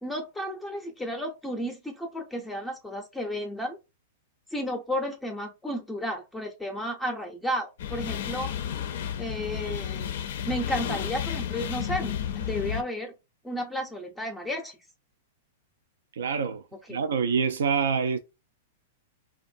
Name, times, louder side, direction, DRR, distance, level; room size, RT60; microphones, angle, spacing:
voice 1, 0.0-3.8 4.5-8.5 9.2-10.2 10.4-13.1 13.4-14.8 16.9-17.0, equal, 5° left, 0.5 m, -33 dB
sound 1, 7.8-12.8, left 9 dB, 65° left, 0.4 m, -32 dB
voice 2, 16.1-16.6 16.9-18.2, right 6 dB, 75° right, 0.3 m, -26 dB
2.5 x 2.1 x 2.5 m
hypercardioid pair, 120°, 0 cm